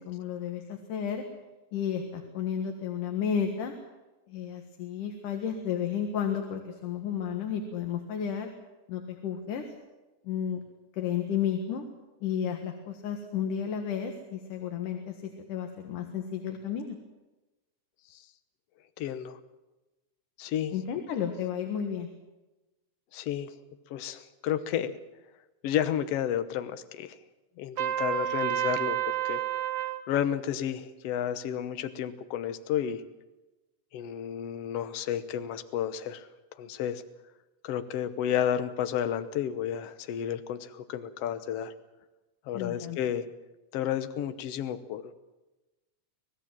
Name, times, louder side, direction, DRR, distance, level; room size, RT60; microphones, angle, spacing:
voice 1, 0.1-1.2 1.7-3.7 4.3-8.5 8.9-9.6 10.2-10.6 10.9-11.8 12.2-15.2 15.5-17.0 20.7-22.1 42.5-43.0, left 8 dB, 85° left, 4 dB, 3.2 m, -32 dB
voice 2, 19.0-19.4 20.4-21.1 23.1-23.5 23.9-25.0 25.6-27.2 27.6-29.0 29.2-29.4 29.8-33.0 33.9-36.3 36.6-37.0 37.6-41.7 42.5-43.3 43.7-45.0, left 10 dB, 60° left, 11 dB, 1.9 m, -31 dB
Trumpet, 27.8-30.0, right 11 dB, 60° right, 2.0 m, -29 dB
26.0 x 17.5 x 7.5 m, 1.1 s
omnidirectional pair, 3.6 m